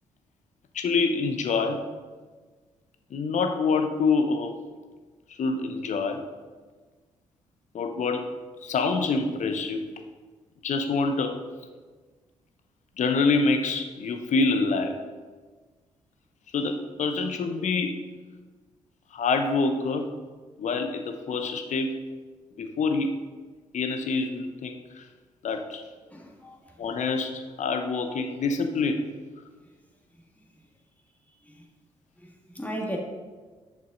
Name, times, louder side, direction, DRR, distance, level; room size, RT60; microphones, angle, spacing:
voice 1, 0.7-1.9 3.1-4.5 5.3-6.2 7.7-8.3 8.6-9.9 10.6-11.4 13.0-15.0 16.5-18.1 19.1-20.1 20.6-22.1 22.6-23.2 23.7-25.1 25.4-25.8 26.8-29.0, left 4 dB, 50° left, 7 dB, 0.9 m, -26 dB
voice 2, 26.1-26.8 29.6-29.7 31.3-31.7 32.2-33.0, equal, 10° left, 0 dB, 1.8 m, -37 dB
9.0 x 6.6 x 3.9 m, 1.4 s
figure-of-eight pair, 40°, 16 cm